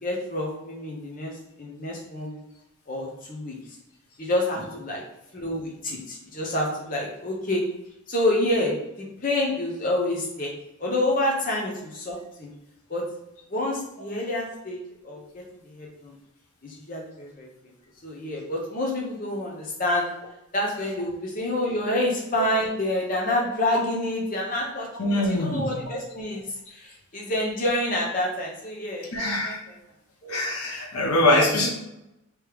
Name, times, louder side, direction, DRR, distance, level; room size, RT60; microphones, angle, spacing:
voice 1, 0.0-1.3 1.6-2.4 2.9-3.6 4.2-5.0 5.3-7.6 8.1-10.5 10.8-12.5 12.9-13.0 13.5-16.2 16.6-17.5 18.0-20.1 20.5-29.8 30.2-30.5, left 1 dB, 40° left, -2 dB, 0.9 m, -28 dB
voice 2, 24.9-25.7 29.1-29.6 30.3-31.7, left 1 dB, 75° left, -1 dB, 1.1 m, -23 dB
3.5 x 3.2 x 4.7 m, 0.84 s
head